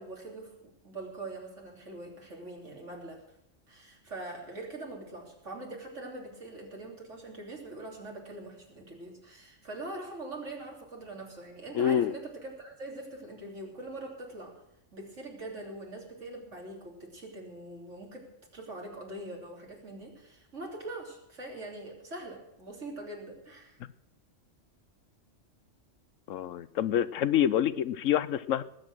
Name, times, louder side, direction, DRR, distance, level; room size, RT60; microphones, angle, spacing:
voice 1, 0.0-3.2 3.7-14.6 14.9-18.3 18.5-23.8, right 2 dB, 70° right, 0 dB, 3.6 m, -43 dB
voice 2, 11.7-12.1 26.3-28.6, left 10 dB, 85° left, 16 dB, 1.1 m, -27 dB
19.5 x 8.7 x 6.2 m, 0.82 s
omnidirectional pair, 1.3 m